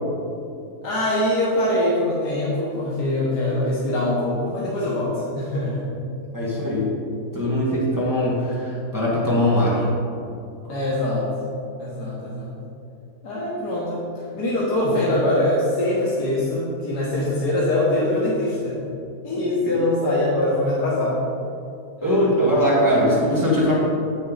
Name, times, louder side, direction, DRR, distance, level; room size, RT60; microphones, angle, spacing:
voice 1, 0.8-5.8 10.7-11.3 11.8-12.5 13.2-14.0 14.3-18.8 19.2-21.2 22.0-22.2, left 1 dB, 85° left, -6 dB, 1.7 m, -23 dB
voice 2, 6.3-6.9 7.3-9.8 19.7-19.8 22.0-23.7, equal, 15° right, -7 dB, 1.5 m, -20 dB
8.1 x 6.6 x 3.9 m, 2.7 s
omnidirectional pair, 1.7 m